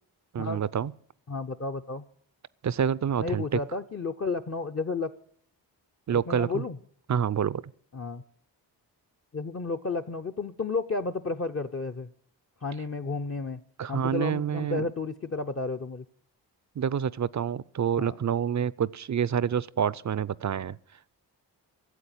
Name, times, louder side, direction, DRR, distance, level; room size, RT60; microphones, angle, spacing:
voice 1, 0.3-0.9 2.6-3.6 6.1-6.6 7.1-7.6 13.8-14.9 16.8-20.8, right 8 dB, 40° right, 0.5 m, -27 dB
voice 2, 1.3-2.0 3.2-5.1 6.1-6.8 7.9-8.2 9.3-12.1 12.6-13.6 13.9-16.0 18.0-18.2, left 3 dB, 30° left, 0.7 m, -32 dB
13.0 x 7.8 x 8.9 m
cardioid pair, 45°, 45 cm